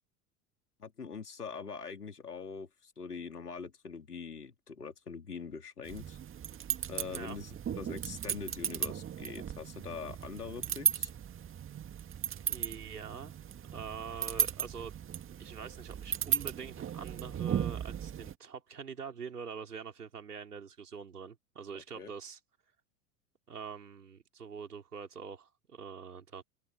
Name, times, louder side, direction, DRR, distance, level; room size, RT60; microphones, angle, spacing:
voice 1, 0.8-6.2 6.9-11.1 21.7-22.1, left 5 dB, 85° left, 3.5 m, -43 dB
sound 1, 5.9-18.3, right 9 dB, 25° right, 2.1 m, -36 dB
voice 2, 7.1-7.4 12.5-13.3 13.7-15.0 15.4-22.4 23.5-26.4, right 6 dB, 80° right, 4.4 m, -44 dB
figure-of-eight pair, 80°, 45 cm